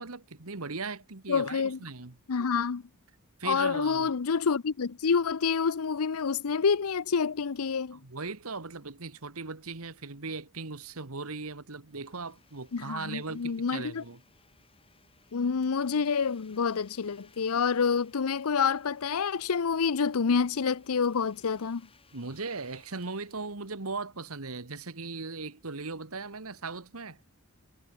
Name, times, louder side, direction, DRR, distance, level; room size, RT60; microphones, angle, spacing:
voice 1, 0.0-2.1 3.4-4.1 7.9-14.2 22.1-27.2, right 4 dB, 70° right, 1.7 m, -38 dB
voice 2, 1.3-1.8 2.3-2.8 3.4-8.0 12.7-14.0 15.3-21.9, left 5 dB, 80° left, 0.6 m, -28 dB
Domestic sounds home sounds, 11.8-24.4, left 5 dB, 25° left, 6.8 m, -64 dB
head